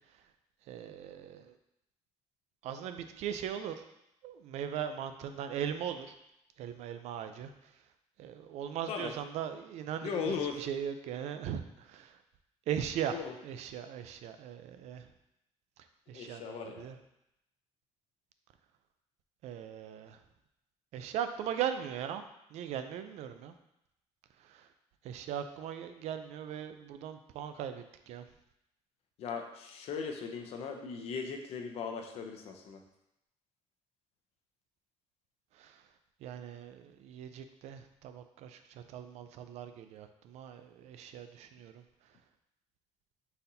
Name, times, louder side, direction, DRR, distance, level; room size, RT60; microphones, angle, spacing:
voice 1, 0.7-1.6 2.6-3.8 4.2-6.1 6.6-7.5 8.2-12.2 12.7-13.2 13.4-15.1 16.1-17.0 19.4-20.2 20.9-22.2 22.5-23.5 24.4-24.7 25.0-28.2 35.5-35.8 36.2-41.8, right 9 dB, 75° right, 9 dB, 0.4 m, -39 dB
voice 2, 10.0-10.6 13.1-13.3 16.1-16.9 29.2-32.8, left 6 dB, 60° left, 4 dB, 0.6 m, -38 dB
4.0 x 4.0 x 2.7 m, 0.84 s
cardioid pair, 165°, 12 cm